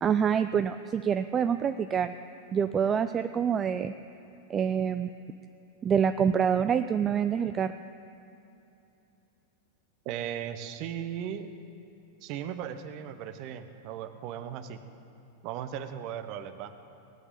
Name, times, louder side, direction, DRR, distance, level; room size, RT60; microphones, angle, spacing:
voice 1, 0.0-2.1 2.5-3.9 4.5-5.1 5.8-7.7, right 7 dB, 25° right, 10 dB, 0.4 m, -26 dB
voice 2, 10.0-11.5 12.2-14.8 15.4-16.7, right 9 dB, 40° right, 10 dB, 0.9 m, -37 dB
18.5 x 8.1 x 9.1 m, 2.8 s
figure-of-eight pair, 90°, 0 cm